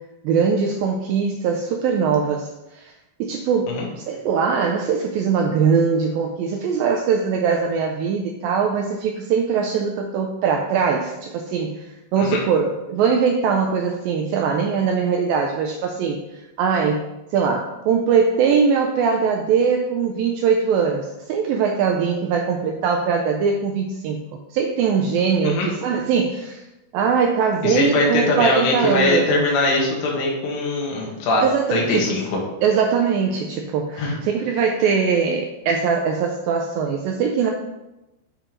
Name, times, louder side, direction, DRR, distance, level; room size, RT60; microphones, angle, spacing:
voice 1, 0.2-2.5 2.7-2.9 3.2-3.8 4.1-11.8 12.1-16.2 16.6-17.0 17.3-24.2 24.5-26.6 26.9-29.4 31.4-32.2 32.6-37.5, right 6 dB, 85° right, 2 dB, 2.0 m, -21 dB
voice 2, 27.6-31.4 31.7-32.4 34.0-34.2, left 2 dB, 85° left, -2 dB, 3.5 m, -21 dB
8.9 x 3.0 x 5.0 m, 0.96 s
omnidirectional pair, 4.7 m